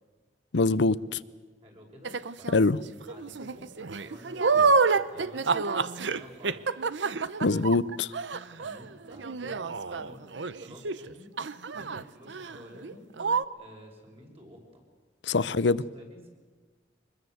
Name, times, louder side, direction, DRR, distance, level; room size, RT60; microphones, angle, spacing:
voice 1, 0.5-1.2 2.5-2.8 7.4-8.1 15.2-15.8, left 3 dB, 70° left, 0.7 m, -24 dB
voice 2, 1.6-2.5 3.1-6.9 8.6-10.2 10.6-11.3 11.7-13.1 13.5-14.8 15.4-16.3, equal, 35° right, 6.1 m, -50 dB
sound 1, 2.0-2.6 3.1-11.1 11.4-12.0 12.3-12.6 12.8-12.9 13.2-13.4, right 4 dB, 80° right, 0.8 m, -28 dB
24.5 x 21.0 x 8.0 m
head